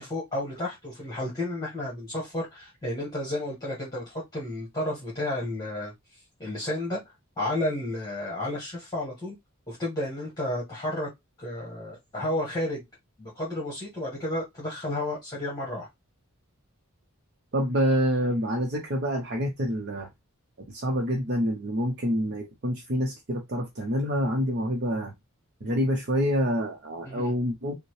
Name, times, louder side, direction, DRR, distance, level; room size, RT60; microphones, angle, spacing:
voice 1, 0.0-7.0 7.4-9.3 9.7-11.1 11.4-12.8 13.2-15.9 27.0-27.3, left 1 dB, 20° left, 1.4 m, -32 dB
voice 2, 17.5-20.1 20.7-25.1 25.6-27.8, equal, 50° right, 0.8 m, -27 dB
5.3 x 2.2 x 3.2 m
head